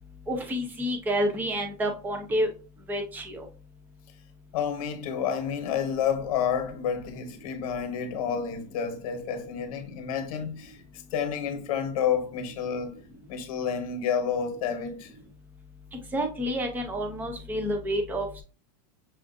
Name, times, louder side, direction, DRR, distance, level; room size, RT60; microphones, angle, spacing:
voice 1, 0.3-2.5 2.9-3.4 16.1-18.4, equal, 10° right, 0.5 m, -29 dB
voice 2, 4.5-10.8 11.1-12.9 13.3-15.1, left 7 dB, 60° left, 1.0 m, -29 dB
6.1 x 2.4 x 2.5 m
supercardioid pair, 155°, 21 cm